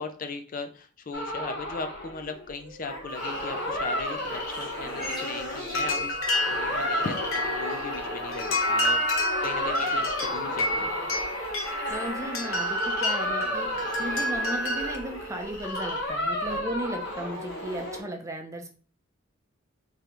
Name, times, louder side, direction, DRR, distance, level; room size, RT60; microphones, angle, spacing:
voice 1, 0.0-6.2 6.5-10.9, left 4 dB, 40° left, 7 dB, 0.4 m, -38 dB
sound 1, 1.1-18.0, left 1 dB, 60° left, 1.1 m, -33 dB
sound 2, 3.1-16.6, left 1 dB, 20° left, 1.6 m, -43 dB
sound 3, 5.7-15.0, left 1 dB, 75° left, 0.7 m, -29 dB
voice 2, 11.9-13.7 14.0-18.7, right 1 dB, 15° right, 4 dB, 0.5 m, -35 dB
3.7 x 3.2 x 3.0 m, 0.39 s
head